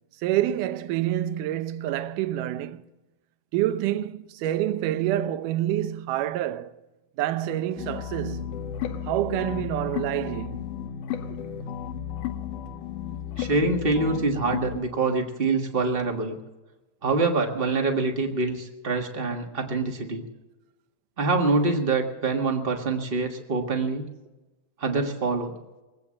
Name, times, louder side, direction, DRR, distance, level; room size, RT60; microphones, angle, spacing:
voice 1, 0.2-2.8 3.5-6.7 7.2-8.6 9.1-10.7, right 13 dB, 80° right, 2.3 m, -27 dB
sound 1, 7.8-14.8, left 9 dB, 80° left, 2.5 m, -33 dB
voice 2, 13.4-16.4 17.0-20.2 21.2-24.1 24.8-25.5, right 3 dB, 55° right, 0.6 m, -25 dB
22.5 x 8.5 x 7.5 m
omnidirectional pair, 3.7 m